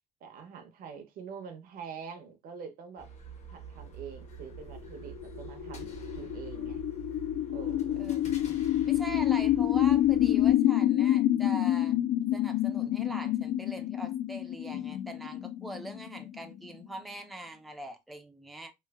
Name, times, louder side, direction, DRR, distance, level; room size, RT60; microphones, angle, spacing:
voice 1, 0.2-3.1 3.5-6.8 7.5-8.1, right 6 dB, 65° right, 0.7 m, -45 dB
sound 1, 3.0-10.5, right 6 dB, 45° left, 0.9 m, -45 dB
sound 2, 4.8-16.9, left 12 dB, 65° left, 0.4 m, -28 dB
voice 2, 8.8-12.0 12.3-18.7, right 1 dB, ahead, 0.4 m, -42 dB
3.1 x 2.1 x 2.2 m
cardioid pair, 95°, 16 cm